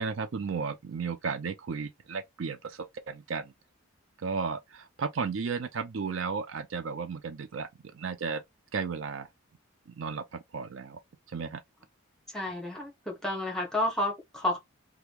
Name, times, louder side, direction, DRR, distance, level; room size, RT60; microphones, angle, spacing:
voice 1, 0.0-3.5 4.2-7.7 7.9-8.4 8.7-9.3 10.0-11.0 11.3-11.6, right 5 dB, 60° right, 0.4 m, -34 dB
voice 2, 12.3-14.6, left 1 dB, 5° left, 1.1 m, -31 dB
3.0 x 2.3 x 3.4 m
head